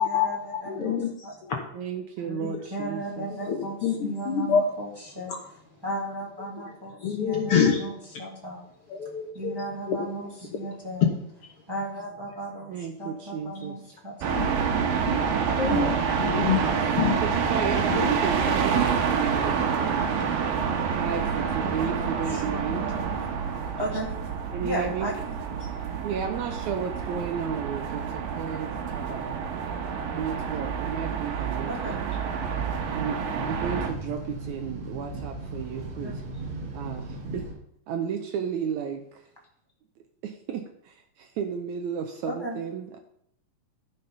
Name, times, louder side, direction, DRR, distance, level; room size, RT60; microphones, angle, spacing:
voice 1, 0.0-1.3 2.2-5.3 5.8-7.9 8.2-11.1 11.5-14.5 16.3-17.0 20.1-20.3 21.3-21.9 22.3-24.2 24.6-25.7 31.7-32.2 36.0-36.2 42.3-42.6, right 1 dB, 10° right, -3 dB, 1.4 m, -36 dB
voice 2, 0.7-1.7 3.5-4.6 7.0-7.8 8.9-9.6 9.9-10.3 14.3-15.2 15.6-15.9 16.2-16.6 17.0-17.2 17.9-18.1 20.7-20.8, left 7 dB, 70° left, 1 dB, 1.4 m, -26 dB
voice 3, 1.7-3.3 12.7-14.0 15.7-15.9 17.2-20.1 20.8-22.9 24.5-25.1 26.0-29.4 30.0-32.1 32.9-36.2 36.7-37.5 37.9-39.3 40.2-43.0, right 7 dB, 75° right, 5 dB, 1.8 m, -33 dB
sound 1, 14.2-33.9, right 6 dB, 90° right, 2.8 m, -28 dB
sound 2, 32.2-37.5, right 2 dB, 55° right, 2.9 m, -37 dB
12.0 x 5.6 x 5.4 m, 0.71 s
omnidirectional pair, 3.9 m